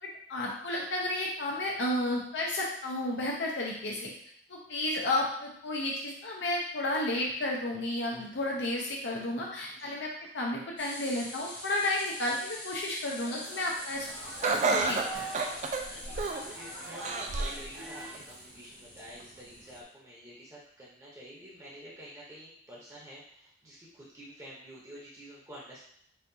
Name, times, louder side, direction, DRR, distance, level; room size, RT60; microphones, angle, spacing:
voice 1, 0.0-4.1 4.5-14.3 14.7-15.2, left 1 dB, 75° left, -2 dB, 0.6 m, -32 dB
sound 1, 10.8-19.8, left 1 dB, 30° left, 0.8 m, -45 dB
sound 2, 13.1-18.1, right 2 dB, 65° right, 0.8 m, -44 dB
Laughter, 14.4-16.5 17.0-17.6 18.1-18.2 19.2-19.3, right 3 dB, 40° right, 0.3 m, -30 dB
voice 2, 15.9-25.8, equal, 20° right, -7 dB, 0.7 m, -49 dB
4.3 x 2.3 x 2.7 m, 0.69 s
head